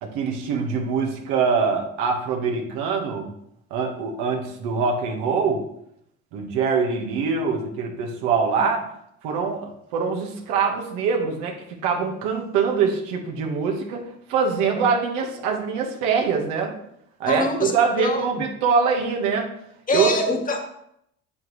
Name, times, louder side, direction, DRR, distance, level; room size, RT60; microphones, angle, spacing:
voice 1, 0.0-3.3 3.7-5.6 6.3-8.8 9.2-11.6 11.8-16.7 17.2-19.5 19.9-20.1, right 5 dB, 90° right, 1 dB, 1.6 m, -24 dB
voice 2, 17.3-18.4 19.9-20.6, left 1 dB, 30° left, 3 dB, 1.7 m, -25 dB
8.3 x 8.0 x 3.2 m, 0.74 s
cardioid pair, 95°, 29 cm